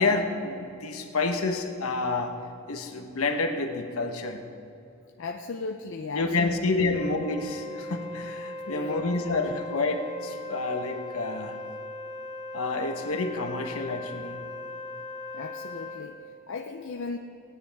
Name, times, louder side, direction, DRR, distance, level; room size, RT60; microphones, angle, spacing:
voice 1, 0.0-2.3 2.7-4.4 6.1-11.6 12.5-14.5, left 3 dB, 75° left, 4 dB, 1.1 m, -29 dB
voice 2, 5.2-7.0 8.7-9.6 15.3-17.2, left 4 dB, 55° left, 3 dB, 0.5 m, -37 dB
Wind instrument woodwind instrument, 6.9-16.1, left 2 dB, 35° left, 2.9 m, -39 dB
18.0 x 9.7 x 3.5 m, 2.8 s
head